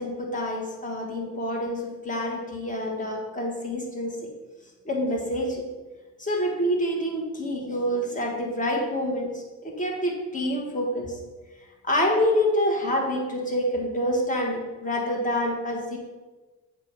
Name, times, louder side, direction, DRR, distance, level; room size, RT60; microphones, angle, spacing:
voice 1, 0.0-4.2 4.9-5.6 6.2-11.2 11.8-16.0, equal, 25° left, -1 dB, 1.7 m, -27 dB
8.1 x 2.9 x 5.5 m, 1.2 s
cardioid pair, 90°, 30 cm